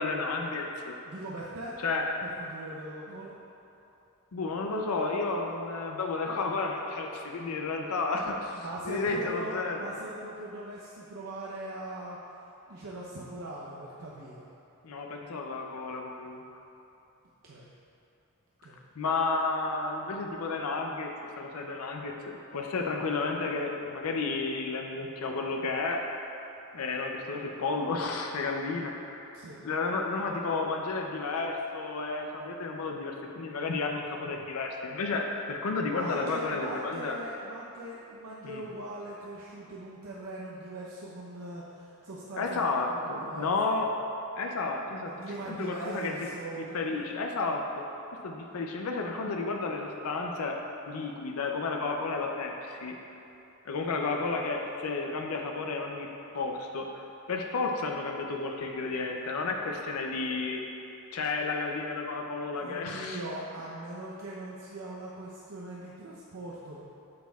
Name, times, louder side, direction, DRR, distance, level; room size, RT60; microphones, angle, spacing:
voice 1, 0.0-1.0 1.8-2.1 4.3-9.8 14.8-16.6 19.0-21.1 21.4-26.0 26.7-29.4 29.6-37.2 38.4-38.6 42.4-43.9 44.4-45.1 45.5-46.3 46.6-47.6 48.2-50.6 50.9-52.9 53.6-56.1 56.3-57.0 57.3-60.6 61.1-63.2, left 3 dB, 80° left, 2 dB, 0.5 m, -32 dB
voice 2, 1.1-1.7 2.2-3.4 8.5-12.2 12.7-14.5 17.4-17.7 18.6-18.8 29.3-29.6 35.9-42.7 43.0-43.5 45.1-47.2 62.5-66.8, right 1 dB, 90° right, -5 dB, 0.7 m, -40 dB
8.4 x 6.2 x 2.3 m, 2.9 s
head